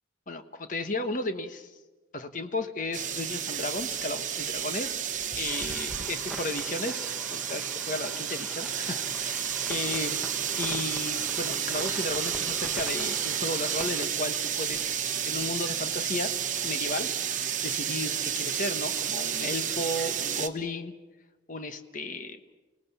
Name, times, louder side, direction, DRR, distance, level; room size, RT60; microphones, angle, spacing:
voice 1, 0.3-1.7 2.1-4.9 5.4-7.0 7.3-10.2 10.6-16.3 16.6-20.9 21.5-22.4, left 2 dB, 45° left, 8 dB, 1.3 m, -34 dB
sound 1, 2.9-20.5, right 9 dB, 45° right, 1.0 m, -31 dB
sound 2, 5.5-14.1, equal, ahead, 1.2 m, -44 dB
28.5 x 18.5 x 7.2 m, 1.2 s
head